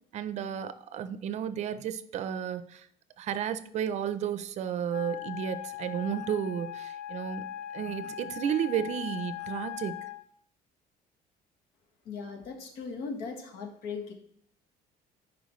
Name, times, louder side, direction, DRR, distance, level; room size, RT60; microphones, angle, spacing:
voice 1, 0.1-2.9 3.2-7.4 7.7-10.0, right 8 dB, 45° right, 12 dB, 0.5 m, -32 dB
Wind instrument woodwind instrument, 4.9-10.3, left 12 dB, 60° left, 0.5 m, -40 dB
voice 2, 12.0-14.1, left 5 dB, 80° left, 4 dB, 1.5 m, -38 dB
10.0 x 4.8 x 3.1 m, 0.65 s
cardioid pair, 165°, 16 cm